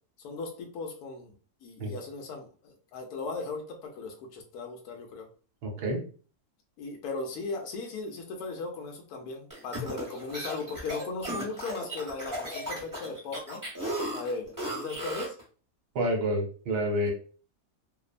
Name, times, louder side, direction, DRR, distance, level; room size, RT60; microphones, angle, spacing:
voice 1, 0.2-1.3 1.6-5.3 6.8-13.6 14.1-15.3, left 3 dB, 70° left, 2 dB, 1.1 m, -37 dB
voice 2, 5.6-6.0 15.9-17.1, right 1 dB, 70° right, 1 dB, 1.4 m, -28 dB
sound 1, 9.5-15.4, right 1 dB, 15° right, 0.8 m, -35 dB
3.0 x 2.0 x 2.4 m, 0.39 s
omnidirectional pair, 1.8 m